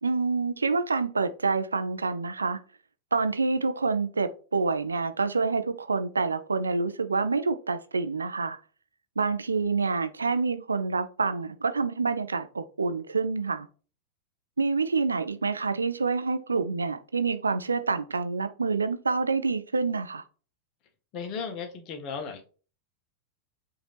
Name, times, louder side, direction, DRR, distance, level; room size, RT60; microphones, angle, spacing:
voice 1, 0.0-2.6 3.1-8.6 9.2-13.7 14.6-20.2, right 4 dB, 75° right, 0.4 m, -27 dB
voice 2, 21.1-22.5, left 5 dB, 40° left, 1.1 m, -35 dB
5.2 x 2.8 x 3.3 m
figure-of-eight pair, 90°, 0 cm